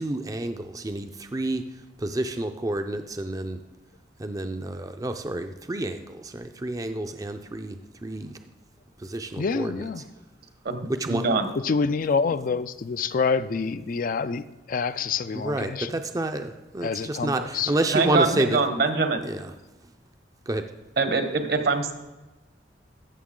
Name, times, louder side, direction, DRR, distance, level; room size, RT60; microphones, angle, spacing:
voice 1, 0.0-1.6 2.0-3.6 4.2-8.4 9.0-9.8 10.9-11.3 15.3-18.6 19.2-19.5 20.5-20.7, right 2 dB, 20° right, 7 dB, 0.5 m, -29 dB
voice 2, 9.4-10.1 11.5-15.9 16.8-17.8, left 5 dB, 50° left, 13 dB, 0.4 m, -27 dB
voice 3, 11.1-11.5 17.9-19.3 21.0-21.9, right 4 dB, 60° right, 8 dB, 1.1 m, -23 dB
15.0 x 6.3 x 3.8 m, 1.1 s
head